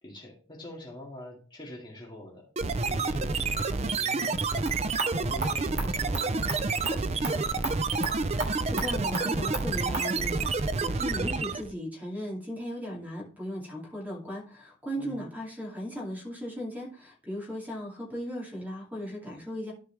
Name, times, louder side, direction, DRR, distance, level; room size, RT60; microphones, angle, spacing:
voice 1, 0.0-2.5 2.8-4.8 5.1-7.8 15.0-15.3, left 1 dB, 25° left, -3 dB, 2.1 m, -45 dB
sound 1, 2.6-11.7, right 3 dB, 35° right, 0.5 m, -29 dB
sound 2, 4.4-10.1, right 3 dB, 55° right, 2.8 m, -38 dB
voice 2, 8.3-19.7, equal, 10° right, -3 dB, 2.5 m, -37 dB
13.0 x 4.8 x 3.3 m, 0.40 s
head